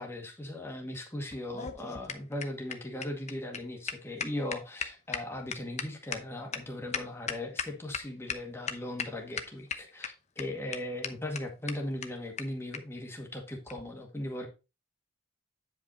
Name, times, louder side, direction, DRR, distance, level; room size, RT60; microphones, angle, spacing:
voice 1, 0.0-14.5, left 1 dB, 10° left, 1 dB, 1.9 m, -38 dB
sound 1, 1.3-8.0 8.3-8.4 8.7-9.1 9.4-10.1 10.4-10.5 10.7-10.8 11.0-11.1 11.4-11.5 11.7-11.8 12.0-12.1 12.4-12.5 12.7-12.8 13.7-13.8, left 6 dB, 30° left, 0.8 m, -36 dB
9.5 x 5.3 x 4.2 m, 0.28 s
head